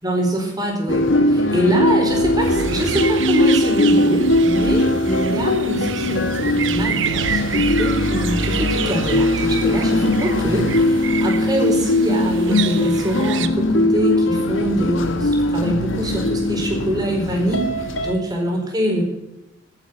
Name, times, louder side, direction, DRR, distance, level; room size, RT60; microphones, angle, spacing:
voice 1, 0.0-19.0, equal, 20° right, 1 dB, 4.5 m, -24 dB
sound 1, 0.9-18.1, left 1 dB, 80° left, 1.8 m, -20 dB
sound 2, 2.4-13.5, right 8 dB, 65° right, 1.1 m, -29 dB
11.5 x 10.5 x 9.1 m, 0.93 s
head